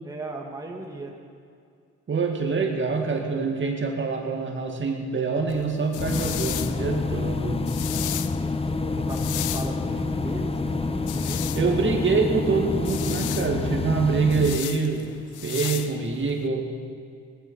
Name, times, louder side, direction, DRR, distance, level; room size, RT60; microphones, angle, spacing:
voice 1, 0.0-1.2 8.3-11.9, right 2 dB, 10° right, 0 dB, 1.8 m, -37 dB
voice 2, 2.1-7.7 11.5-15.1 15.4-16.7, right 4 dB, 40° right, 2 dB, 2.1 m, -25 dB
sound 1, 5.5-16.5, left 14 dB, 80° left, 0.6 m, -36 dB
sound 2, 6.0-14.6, left 3 dB, 20° left, 0.8 m, -27 dB
18.5 x 12.5 x 5.6 m, 2.3 s
cardioid pair, 90°, 30 cm